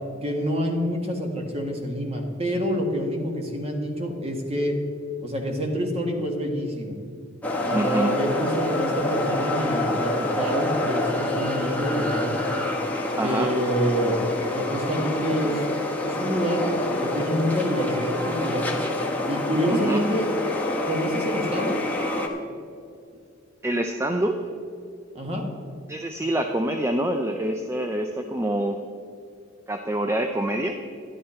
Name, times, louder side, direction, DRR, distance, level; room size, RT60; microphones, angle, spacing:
voice 1, 0.2-4.8 5.2-7.0 7.7-12.3 13.2-14.2 14.5-15.6 16.0-18.7 19.3-20.3 20.9-21.8 25.2-25.5, equal, 30° right, 2 dB, 1.6 m, -27 dB
sound 1, 7.4-22.3, left 1 dB, 10° left, 1.2 m, -27 dB
voice 2, 7.7-8.1 13.1-13.5 19.7-20.0 23.6-24.4 25.9-28.8 29.7-30.7, right 1 dB, 15° right, 5 dB, 0.5 m, -26 dB
12.0 x 11.0 x 4.4 m, 2.4 s
head